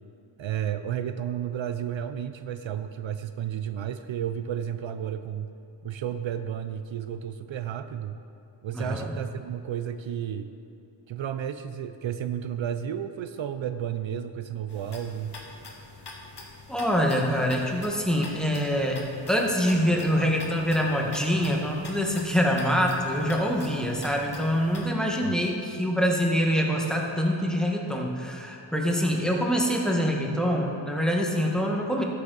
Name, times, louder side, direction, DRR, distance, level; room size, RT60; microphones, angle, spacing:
voice 1, 0.4-5.5 5.8-8.2 8.6-10.5 11.1-15.3 25.2-25.3, right 9 dB, 70° right, 10 dB, 0.5 m, -32 dB
voice 2, 8.7-9.1 16.7-32.0, equal, ahead, 0 dB, 1.3 m, -25 dB
sound 1, 14.7-24.9, left 3 dB, 55° left, 1.4 m, -45 dB
13.0 x 6.6 x 3.9 m, 2.8 s
wide cardioid pair, 70°, 48 cm